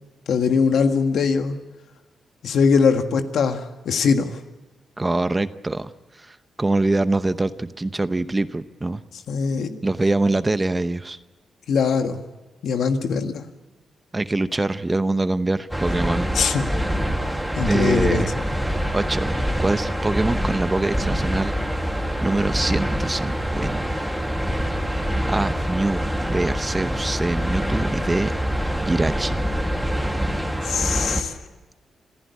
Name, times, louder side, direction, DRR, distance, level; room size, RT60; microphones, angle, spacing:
voice 1, 0.3-1.5 2.4-4.4 9.3-9.8 11.7-12.2 12.6-13.5 16.3-16.7 17.6-18.4 30.6-31.4, left 5 dB, 75° left, 6 dB, 1.7 m, -21 dB
voice 2, 5.0-9.0 9.8-11.2 14.1-16.3 17.3-18.3 18.9-19.3 19.6-21.5 22.2-23.8 25.3-28.3 28.8-29.3, right 2 dB, 20° right, 12 dB, 0.8 m, -24 dB
sound 1, 15.7-31.2, equal, ahead, 2.0 m, -25 dB
27.0 x 15.0 x 8.4 m, 1.2 s
cardioid pair, 110°, 0 cm